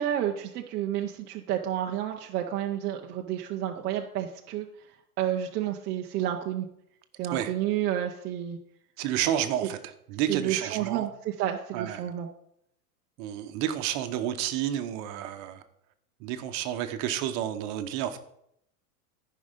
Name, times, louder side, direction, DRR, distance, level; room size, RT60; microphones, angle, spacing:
voice 1, 0.0-4.7 5.2-6.7 7.2-8.6 9.6-9.7 10.3-12.3, right 11 dB, 25° right, 2 dB, 0.5 m, -30 dB
voice 2, 9.0-11.1 11.7-12.0 13.2-15.6 16.2-18.2, right 11 dB, 40° right, 8 dB, 1.0 m, -30 dB
13.5 x 5.5 x 5.2 m, 0.76 s
supercardioid pair, 140°, 45 cm